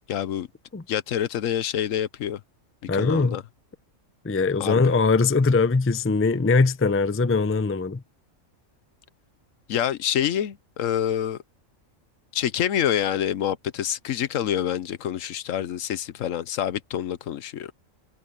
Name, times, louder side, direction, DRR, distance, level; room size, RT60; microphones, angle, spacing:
voice 1, 0.1-0.5 0.9-2.4 3.0-3.4 4.6-4.9 9.7-11.4 12.3-17.7, left 10 dB, 80° left, 1.1 m, -27 dB
voice 2, 2.9-3.4 4.2-8.0, left 4 dB, 15° left, 0.4 m, -21 dB
omnidirectional pair, 1.4 m